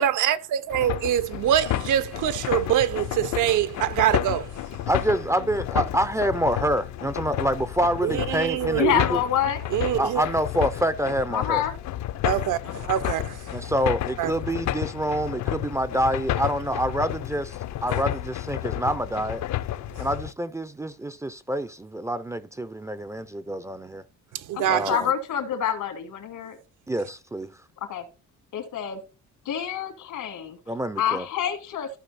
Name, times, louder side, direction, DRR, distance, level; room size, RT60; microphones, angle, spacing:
voice 1, 0.0-4.5 8.0-8.9 9.7-10.3 12.2-12.6 12.9-13.6 14.2-14.3 24.3-25.0, right 11 dB, 80° right, 0.8 m, -24 dB
sound 1, 0.7-20.3, left 13 dB, 65° left, 0.6 m, -31 dB
voice 2, 4.9-9.2 10.0-11.6 13.5-17.6 17.8-19.4 20.0-24.0 24.7-25.1 26.9-27.5 30.7-31.3, right 1 dB, 10° right, 0.3 m, -27 dB
voice 3, 8.8-9.6 11.3-11.7 24.5-26.6 27.8-28.0 28.5-29.0 29.5-30.6 31.0-31.9, left 10 dB, 90° left, 2.6 m, -27 dB
15.0 x 6.0 x 2.6 m
cardioid pair, 180°, 30 cm